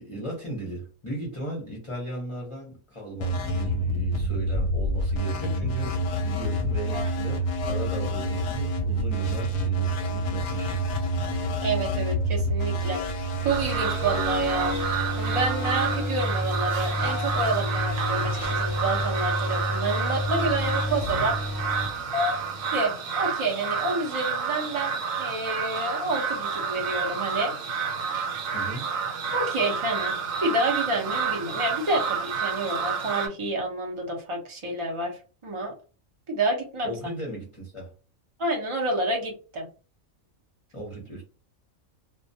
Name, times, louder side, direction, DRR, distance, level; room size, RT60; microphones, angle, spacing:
voice 1, 0.0-10.8 11.5-11.6 28.5-28.8 36.8-37.9 40.7-41.2, right 1 dB, 30° left, 0.6 m, -37 dB
sound 1, 3.2-22.7, equal, 65° left, 0.8 m, -28 dB
voice 2, 11.6-14.8 15.2-21.4 22.1-22.4 22.7-27.5 29.3-30.2 30.4-35.7 36.3-36.9 38.4-39.7, right 2 dB, 50° right, 0.3 m, -29 dB
sound 2, 13.5-33.3, right 6 dB, 75° right, 0.9 m, -30 dB
2.2 x 2.1 x 2.6 m
omnidirectional pair, 1.4 m